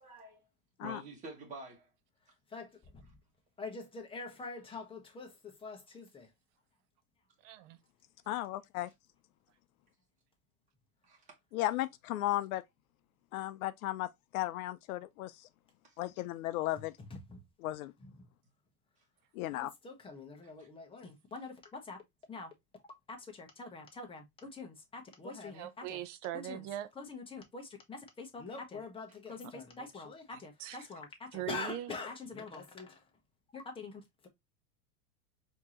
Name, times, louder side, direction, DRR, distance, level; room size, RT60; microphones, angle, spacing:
voice 1, 0.0-0.5 0.8-1.9 11.0-11.4 15.8-16.0 20.6-20.7, right 3 dB, 15° right, 1.4 m, -48 dB
voice 2, 2.5-3.1 3.6-6.3 17.0-17.4 18.0-18.3 19.5-22.0 22.3-22.5 22.8-26.0 26.4-26.7 27.0-33.0 33.5-34.3, left 4 dB, 10° left, 0.9 m, -45 dB
voice 3, 7.4-7.8 25.5-26.9 29.4-29.5 30.3-30.8 31.3-31.9, right 13 dB, 55° right, 0.7 m, -41 dB
voice 4, 8.3-8.9 11.5-12.6 13.3-14.1 14.3-15.3 16.0-16.9 17.6-17.9 19.4-19.7, left 15 dB, 70° left, 0.5 m, -35 dB
4.5 x 2.9 x 2.8 m
supercardioid pair, 135°, 45 cm